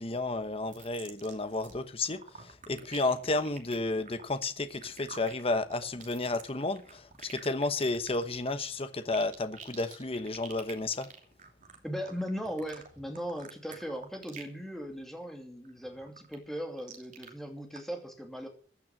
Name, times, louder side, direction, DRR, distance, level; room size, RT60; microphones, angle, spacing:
voice 1, 0.0-11.1, left 2 dB, 30° left, 1.0 m, -32 dB
sound 1, 0.7-1.8 2.0-14.6 14.9-15.2 15.6-17.3 17.7-17.8, right 5 dB, 45° right, 2.9 m, -49 dB
voice 2, 11.8-18.5, equal, ahead, 2.6 m, -38 dB
15.5 x 9.4 x 6.1 m
head